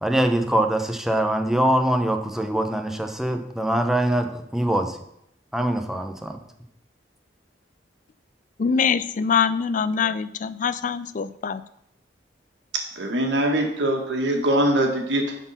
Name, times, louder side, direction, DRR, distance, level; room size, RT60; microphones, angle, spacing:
voice 1, 0.0-5.0 5.5-6.4, right 1 dB, ahead, 5 dB, 0.8 m, -23 dB
voice 2, 8.6-11.6, left 6 dB, 45° left, 14 dB, 0.4 m, -24 dB
voice 3, 13.0-15.3, right 1 dB, 75° right, 2 dB, 1.8 m, -22 dB
11.0 x 4.5 x 5.7 m, 0.77 s
head